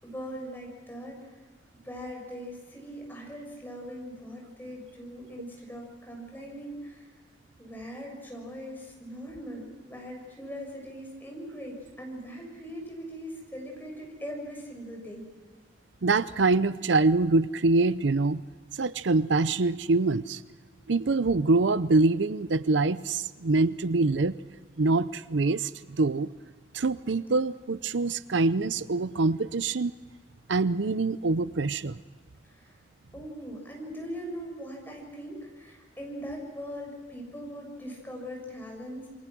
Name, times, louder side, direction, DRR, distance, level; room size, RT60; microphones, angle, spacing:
voice 1, 0.0-1.4 1.8-7.1 7.6-15.3 32.4-32.8 33.1-39.1, equal, 10° left, 0 dB, 6.7 m, -40 dB
voice 2, 16.0-18.4 18.7-20.4 20.9-24.4 24.8-26.3 26.7-29.9 30.5-32.0, right 3 dB, 85° right, 16 dB, 0.7 m, -25 dB
28.5 x 23.0 x 6.2 m, 1.4 s
head